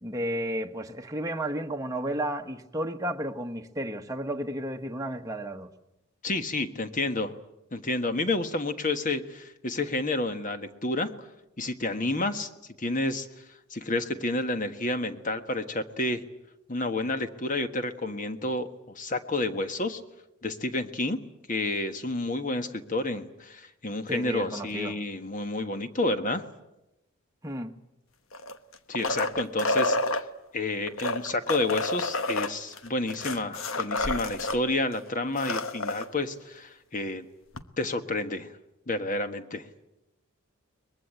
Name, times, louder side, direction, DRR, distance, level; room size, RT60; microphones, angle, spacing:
voice 1, 0.0-5.7 24.1-25.0 27.4-27.7, right 1 dB, 15° right, 1.1 m, -32 dB
voice 2, 6.2-7.3 7.7-11.3 11.6-12.5 12.8-13.4 13.7-16.2 16.7-20.0 20.4-21.2 21.5-26.4 28.9-30.3 30.5-37.2 37.8-38.5 38.9-39.6, left 2 dB, 35° left, 1.5 m, -30 dB
sound 1, 28.3-30.2 30.9-34.6 34.9-35.0 35.3-36.1 37.6-37.7, left 2 dB, 65° left, 1.2 m, -29 dB
23.0 x 21.5 x 9.0 m
head